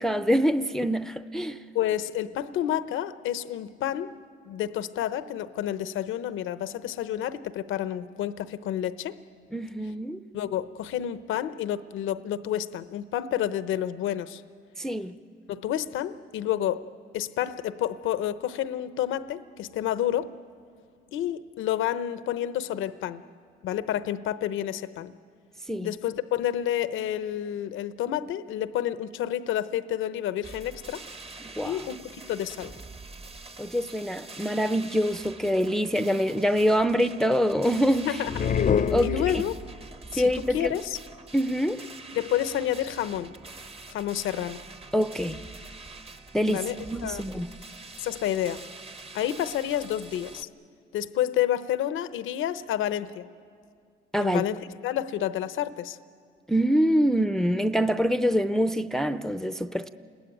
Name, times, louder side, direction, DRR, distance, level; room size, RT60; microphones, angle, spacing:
voice 1, 0.0-1.6 9.5-10.2 14.8-15.1 25.7-25.9 31.4-31.8 33.6-38.2 38.9-39.1 40.2-40.7 41.3-41.9 44.9-45.4 46.3-47.5 54.1-54.4 56.5-59.9, equal, ahead, 0.6 m, -25 dB
voice 2, 1.7-4.1 4.5-9.2 10.3-14.4 15.5-16.9 17.1-20.3 21.1-23.2 23.6-25.1 25.8-31.0 31.6-32.7 38.0-38.3 39.0-39.5 40.1-41.0 42.1-43.3 43.9-44.6 46.4-46.8 47.0-47.2 48.0-48.6 49.1-50.5 50.9-53.3 54.2-56.0, left 11 dB, 85° left, 0.8 m, -29 dB
sound 1, 30.4-50.4, right 3 dB, 30° right, 1.2 m, -45 dB
sound 2, 38.3-39.8, left 7 dB, 40° left, 0.6 m, -26 dB
29.5 x 21.0 x 9.2 m
cardioid pair, 90°, 20 cm